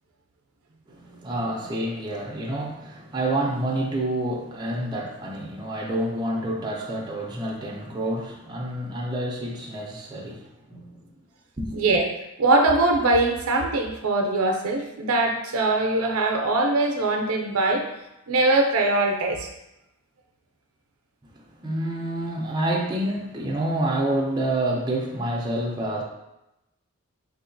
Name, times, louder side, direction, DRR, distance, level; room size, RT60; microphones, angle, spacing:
voice 1, 0.9-11.0 11.6-11.8 21.6-26.0, right 1 dB, 20° right, -2 dB, 0.4 m, -28 dB
voice 2, 11.7-12.1 12.4-17.8 18.3-19.5, right 2 dB, 85° right, 3 dB, 0.5 m, -22 dB
4.0 x 2.8 x 2.6 m, 0.91 s
head